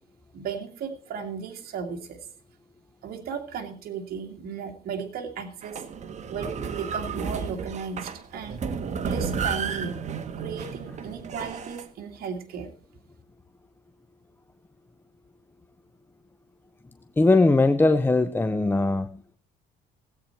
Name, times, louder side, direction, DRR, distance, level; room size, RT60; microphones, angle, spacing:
voice 1, 0.3-2.2 3.0-5.8 6.3-6.5 6.8-8.6 9.0-10.0 10.4-12.7, right 6 dB, 60° right, 2 dB, 2.2 m, -35 dB
sound 1, 5.6-11.8, right 6 dB, 45° right, 1.3 m, -32 dB
voice 2, 17.2-19.4, left 2 dB, 10° left, 10 dB, 0.6 m, -20 dB
17.0 x 8.6 x 4.4 m, 0.42 s
cardioid pair, 110°, 17 cm